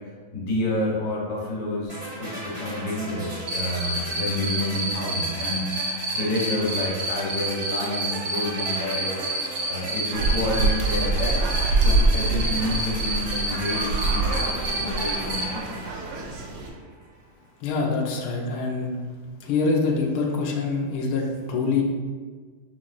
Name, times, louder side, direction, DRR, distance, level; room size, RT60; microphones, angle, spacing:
voice 1, 0.3-9.2 9.7-14.5 14.8-15.6, left 2 dB, 55° left, -4 dB, 1.3 m, -29 dB
sound 1, 1.9-16.8, right 1 dB, 40° right, 0.5 m, -37 dB
Cricket, 3.5-15.4, right 2 dB, 60° right, 0.9 m, -28 dB
sound 2, 10.1-16.7, right 2 dB, 85° right, 1.5 m, -25 dB
voice 2, 17.6-18.9 19.4-21.8, left 4 dB, 85° left, -1 dB, 0.8 m, -25 dB
5.8 x 3.0 x 2.4 m, 1.5 s
omnidirectional pair, 2.3 m